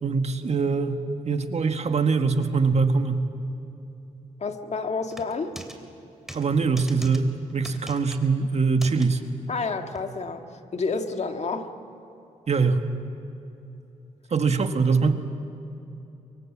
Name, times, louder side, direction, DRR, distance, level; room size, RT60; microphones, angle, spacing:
voice 1, 0.0-3.3 6.3-9.2 12.5-12.8 14.3-15.1, right 4 dB, 55° right, 7 dB, 1.7 m, -23 dB
voice 2, 4.4-5.6 9.5-10.5 10.7-11.7, left 4 dB, 55° left, 6 dB, 1.8 m, -29 dB
sound 1, 5.1-5.8 6.3-6.5 6.8-7.2 7.6-8.3 8.8-9.1 10.0-10.1, right 1 dB, 5° right, 3.1 m, -40 dB
24.0 x 23.5 x 7.3 m, 2.9 s
cardioid pair, 65°, 14 cm